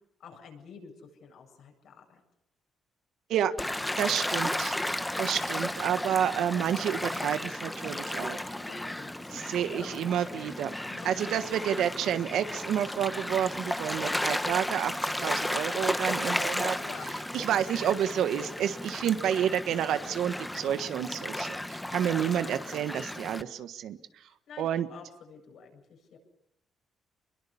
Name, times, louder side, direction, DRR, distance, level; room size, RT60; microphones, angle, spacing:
voice 1, 0.2-2.2 8.5-10.1 10.9-11.1 16.7-17.1 22.2-22.6 24.5-26.2, left 6 dB, 70° left, 2 dB, 8.0 m, -48 dB
Gull seagull / Waves surf, 3.6-23.4, left 1 dB, 10° left, 1.1 m, -34 dB
voice 2, 4.0-4.7 5.2-8.4 9.5-10.7 11.0-16.8 17.3-24.0 24.6-24.9, right 9 dB, 80° right, 10 dB, 1.4 m, -29 dB
26.5 x 22.0 x 7.2 m, 0.79 s
cardioid pair, 90°, 0 cm